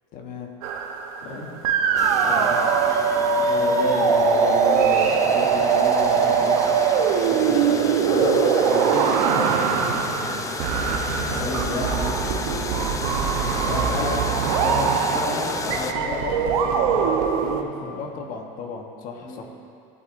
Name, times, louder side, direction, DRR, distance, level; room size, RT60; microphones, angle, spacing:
voice 1, 0.1-0.5 2.2-2.7 13.7-14.3 18.0-19.5, left 5 dB, 50° left, 3 dB, 1.0 m, -36 dB
sound 1, 0.6-1.3 1.6-17.6, right 6 dB, 80° right, 0.8 m, -22 dB
sound 2, 1.9-7.2, right 3 dB, 40° right, 1.6 m, -37 dB
sound 3, 2.0-15.9, left 4 dB, 15° left, 0.4 m, -33 dB
voice 2, 3.5-6.6 7.2-10.4 11.2-12.4 13.6-14.1 14.6-17.1 17.4-18.1 19.2-19.4, left 2 dB, 80° left, -6 dB, 2.4 m, -31 dB
15.0 x 8.1 x 2.6 m, 2.5 s
supercardioid pair, 130°, 18 cm